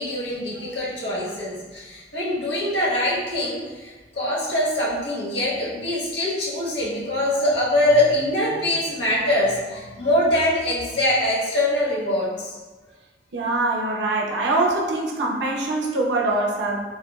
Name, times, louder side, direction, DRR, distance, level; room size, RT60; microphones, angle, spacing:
voice 1, 0.0-12.6, left 1 dB, 70° left, -5 dB, 0.8 m, -23 dB
voice 2, 13.3-16.8, right 2 dB, 70° right, -1 dB, 0.5 m, -23 dB
3.8 x 2.0 x 2.2 m, 1.3 s
head